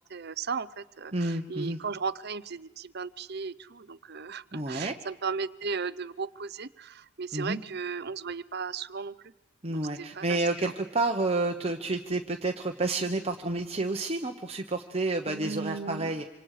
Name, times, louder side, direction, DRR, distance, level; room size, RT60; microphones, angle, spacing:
voice 1, 0.1-9.3 9.7-10.7 15.3-16.1, right 5 dB, 50° right, 16 dB, 0.7 m, -36 dB
voice 2, 1.1-1.8 4.5-5.0 7.3-7.6 9.6-16.2, right 2 dB, 30° right, 4 dB, 1.1 m, -30 dB
27.0 x 26.5 x 5.0 m, 1.0 s
head